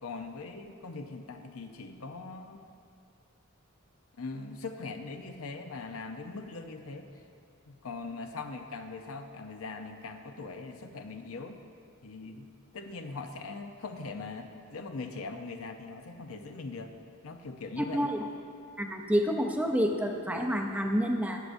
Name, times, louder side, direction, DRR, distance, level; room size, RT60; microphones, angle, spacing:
voice 1, 0.0-2.7 4.2-7.1 7.7-11.6 12.0-12.5 12.7-16.9 17.2-18.1, left 3 dB, 85° left, 6 dB, 0.7 m, -41 dB
voice 2, 18.8-21.4, equal, 5° right, 3 dB, 0.6 m, -28 dB
14.0 x 9.6 x 2.6 m, 2.4 s
head